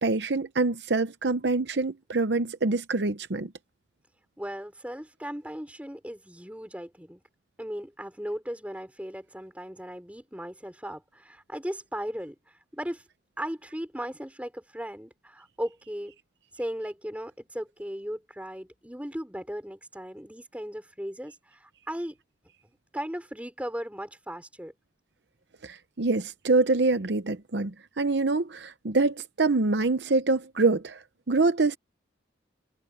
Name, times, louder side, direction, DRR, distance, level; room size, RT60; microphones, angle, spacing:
voice 1, 0.0-3.5 25.6-31.8, right 3 dB, 60° right, 0.8 m, -25 dB
voice 2, 4.4-7.2 7.6-12.4 12.7-13.0 13.4-16.1 16.5-22.2 22.9-24.7, equal, 5° right, 5.2 m, -37 dB
head